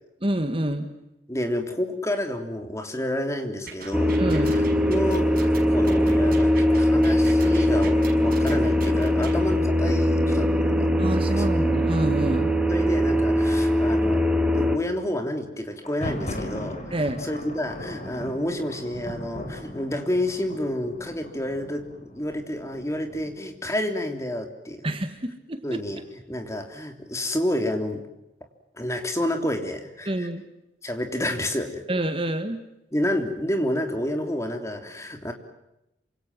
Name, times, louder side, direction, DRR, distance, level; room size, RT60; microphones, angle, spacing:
voice 1, 0.2-0.9 4.2-4.5 11.0-12.5 16.9-17.2 24.8-25.8 30.1-30.4 31.9-32.6, right 1 dB, 30° right, 9 dB, 1.9 m, -27 dB
voice 2, 1.3-11.6 12.7-14.3 14.5-24.9 25.6-28.0 28.7-30.3 30.8-31.8 32.9-35.3, left 1 dB, 15° left, 6 dB, 3.3 m, -29 dB
sound 1, 3.7-9.4, right 4 dB, 55° right, 5.7 m, -40 dB
sound 2, 3.9-14.8, equal, 5° right, 2.4 m, -21 dB
Thunder, 15.7-23.5, left 1 dB, 35° left, 6.3 m, -38 dB
27.5 x 26.5 x 7.6 m, 0.88 s
head